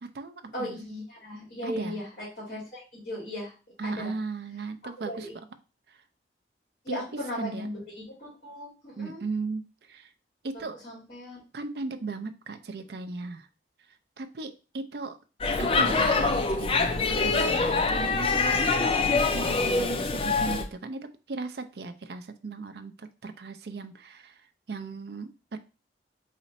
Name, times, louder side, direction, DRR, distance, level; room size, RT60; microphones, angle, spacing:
voice 1, 0.0-0.8 1.6-2.0 3.8-5.3 5.9-6.0 6.9-7.7 9.0-10.1 10.4-10.8 11.5-13.5 14.2-15.2 15.6-25.6, right 3 dB, 60° right, 8 dB, 0.4 m, -37 dB
voice 2, 0.5-3.5 3.8-4.1 5.1-5.4 6.8-9.2 10.5-11.4, left 1 dB, 45° left, -11 dB, 2.3 m, -37 dB
Speech / Shout / Subway metro underground, 15.4-20.7, left 4 dB, 30° left, 0.4 m, -25 dB
4.2 x 2.5 x 4.0 m, 0.33 s
head